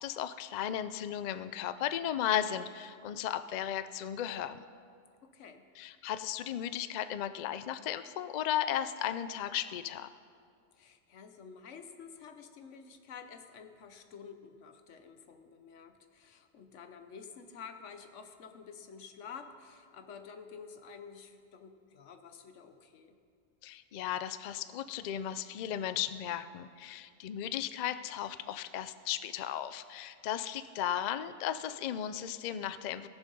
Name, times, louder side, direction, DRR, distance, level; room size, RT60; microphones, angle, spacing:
voice 1, 0.0-4.6 5.8-10.1 23.6-33.1, left 10 dB, 65° left, 12 dB, 0.4 m, -35 dB
voice 2, 5.2-5.7 10.7-23.2, left 6 dB, 90° left, 8 dB, 1.2 m, -50 dB
18.0 x 7.1 x 5.4 m, 2.2 s
omnidirectional pair, 1.2 m